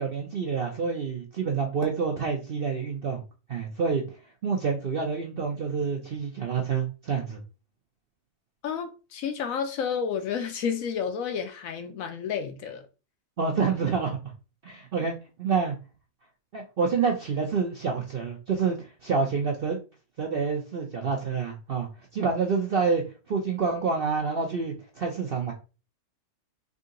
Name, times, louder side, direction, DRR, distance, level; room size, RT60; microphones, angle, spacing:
voice 1, 0.0-3.2 3.5-4.0 4.4-7.4 13.4-14.2 14.6-15.8 16.5-19.8 20.2-21.9 22.1-23.0 23.3-25.5, right 5 dB, 60° right, 0.6 m, -27 dB
voice 2, 8.6-12.9, left 7 dB, 70° left, 0.9 m, -31 dB
3.7 x 2.7 x 3.7 m
omnidirectional pair, 1.7 m